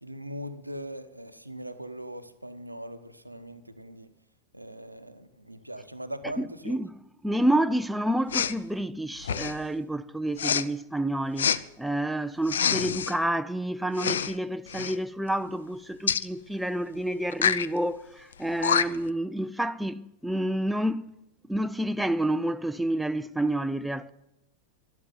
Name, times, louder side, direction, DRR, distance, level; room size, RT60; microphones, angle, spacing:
voice 1, 0.0-4.1 4.5-6.8 18.7-18.8, right 1 dB, 85° right, 1.1 m, -40 dB
voice 2, 6.4-6.9 7.2-11.5 11.8-21.1 21.5-24.1, right 1 dB, 5° right, 0.5 m, -29 dB
Respiratory sounds, 8.3-8.6 9.2-9.6 10.4-10.6 11.4-11.6 12.5-13.1 13.9-14.3 14.7-15.0 16.1-16.3 17.3-17.7 18.3-18.4 18.6-19.1, left 7 dB, 65° left, 0.6 m, -26 dB
12.5 x 12.0 x 7.7 m
figure-of-eight pair, 90°, 0 cm